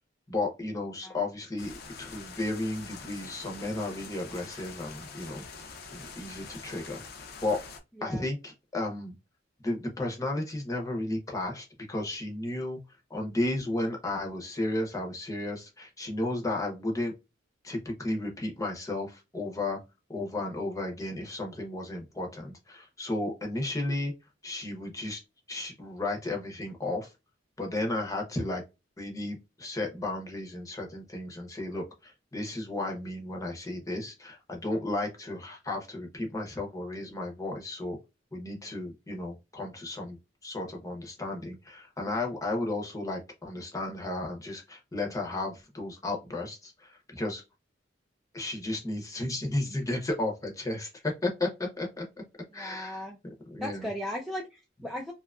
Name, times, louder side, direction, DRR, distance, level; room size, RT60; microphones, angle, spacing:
voice 1, 0.3-5.4 5.9-7.0 7.4-7.6 8.0-9.1 9.6-12.8 13.1-17.1 17.6-19.8 20.1-24.1 24.4-25.2 25.5-27.1 27.6-28.6 29.0-38.0 38.3-47.4 48.3-52.1 52.5-53.0 53.5-53.9, left 2 dB, 20° left, 1 dB, 0.7 m, -33 dB
sound 1, 1.6-7.8, left 5 dB, 55° left, 0.5 m, -45 dB
voice 2, 52.5-53.2 53.6-55.1, left 1 dB, ahead, -1 dB, 0.3 m, -37 dB
2.7 x 2.4 x 2.3 m, 0.25 s
head